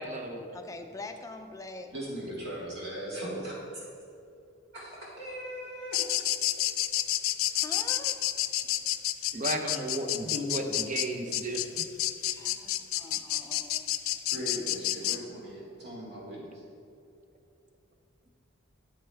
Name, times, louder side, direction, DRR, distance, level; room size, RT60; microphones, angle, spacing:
voice 1, 0.0-0.4 6.7-6.8 9.3-11.9, right 1 dB, 35° right, 4 dB, 0.8 m, -34 dB
voice 2, 0.5-1.9 7.5-8.2 12.2-13.9, left 2 dB, 15° left, 5 dB, 0.5 m, -44 dB
voice 3, 1.9-3.5 4.7-6.3 14.3-16.5, equal, 55° right, -6 dB, 2.0 m, -39 dB
sound 1, 5.9-15.2, left 14 dB, 85° left, 0.4 m, -29 dB
8.8 x 8.8 x 3.4 m, 2.6 s
head